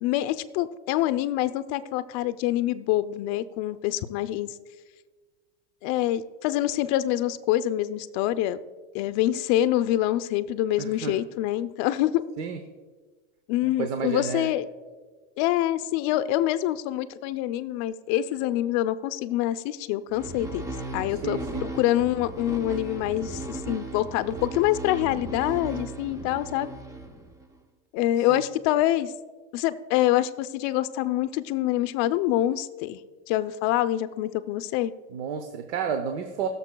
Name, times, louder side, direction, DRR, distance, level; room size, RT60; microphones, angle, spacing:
voice 1, 0.0-4.5 5.8-8.6 8.9-12.2 13.5-14.6 15.4-26.7 27.9-29.1 29.5-33.0 33.3-34.9, left 14 dB, 50° left, 11 dB, 0.6 m, -26 dB
voice 2, 10.8-11.2 12.4-12.6 13.6-14.5 21.2-21.6 28.2-28.4 35.1-36.5, right 7 dB, 85° right, 7 dB, 0.9 m, -31 dB
sound 1, 20.1-27.6, right 2 dB, 10° right, 0.6 m, -36 dB
20.0 x 6.8 x 2.3 m, 1.4 s
supercardioid pair, 135°, 34 cm